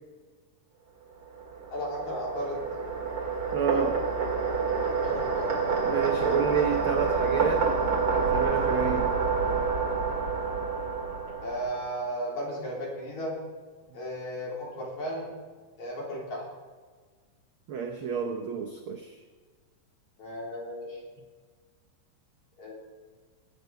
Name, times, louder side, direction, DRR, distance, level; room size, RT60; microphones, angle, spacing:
sound 1, 1.3-12.0, right 5 dB, 45° right, 2.7 m, -28 dB
voice 1, 1.7-2.7 4.9-5.6 11.4-13.5 13.9-15.3 15.8-16.4 20.2-21.0 22.6-22.8, equal, 70° left, -3 dB, 4.9 m, -35 dB
voice 2, 3.5-4.0 5.8-7.7 8.1-9.2 17.7-19.2, right 6 dB, 70° right, 3 dB, 1.2 m, -29 dB
19.0 x 8.7 x 4.6 m, 1.5 s
omnidirectional pair, 3.5 m